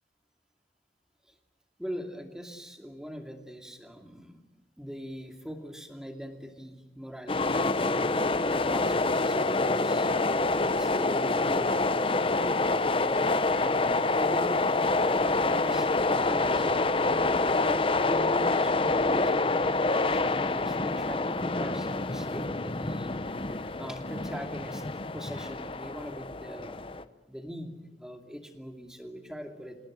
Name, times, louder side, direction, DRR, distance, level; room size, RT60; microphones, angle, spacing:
voice 1, 1.8-4.4 4.8-7.8 8.4-12.0 12.7-17.2 17.6-24.8 25.1-26.8 27.3-29.8, equal, 5° right, 4 dB, 2.5 m, -41 dB
sound 1, 7.3-27.0, left 3 dB, 30° left, 0.9 m, -27 dB
27.0 x 18.0 x 9.1 m, 1.1 s
head